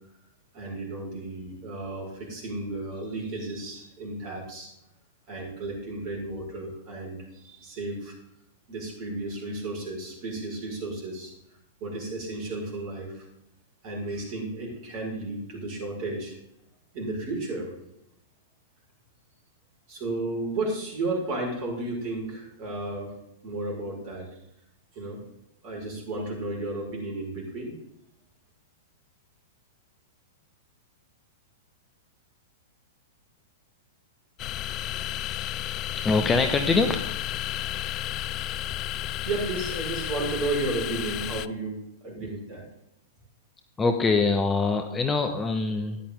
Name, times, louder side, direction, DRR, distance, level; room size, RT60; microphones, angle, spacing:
voice 1, 0.5-4.7 5.3-8.1 8.7-11.3 11.8-13.3 13.8-16.3 16.9-17.7 19.9-23.1 23.4-24.3 24.9-25.2 25.6-27.7 38.9-42.6, right 2 dB, 40° right, -1 dB, 5.7 m, -33 dB
sound 1, 34.4-41.5, left 13 dB, 35° left, 0.4 m, -32 dB
voice 2, 36.0-37.0 43.8-46.0, left 4 dB, 15° left, 6 dB, 1.0 m, -23 dB
13.5 x 10.5 x 3.8 m, 0.81 s
figure-of-eight pair, 100°, 0 cm